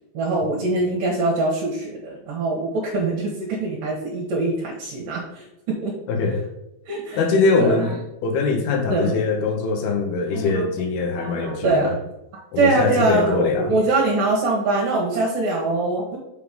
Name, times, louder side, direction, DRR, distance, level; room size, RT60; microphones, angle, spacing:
voice 1, 0.1-5.9 6.9-7.2 7.6-7.9 8.8-9.1 10.3-10.7 11.2-12.0 12.6-16.2, right 2 dB, 70° right, -2 dB, 2.7 m, -23 dB
voice 2, 6.1-6.4 7.2-11.9 12.5-13.7, left 4 dB, 85° left, 4 dB, 3.1 m, -22 dB
6.7 x 5.0 x 5.1 m, 0.90 s
omnidirectional pair, 4.3 m